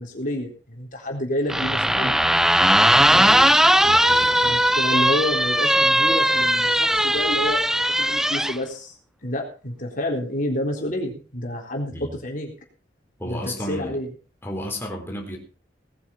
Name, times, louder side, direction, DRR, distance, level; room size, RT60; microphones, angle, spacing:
voice 1, 0.0-2.1 3.1-3.4 4.4-7.7 8.0-9.0 9.2-12.5 13.2-14.1, left 1 dB, 50° left, 1 dB, 3.8 m, -29 dB
sound 1, 1.5-8.6, right 1 dB, 5° right, 0.6 m, -18 dB
voice 2, 3.0-3.6 3.8-4.7 11.9-12.1 13.2-14.0 14.4-15.4, equal, 15° left, 0 dB, 4.1 m, -33 dB
19.0 x 10.0 x 4.5 m, 0.36 s
head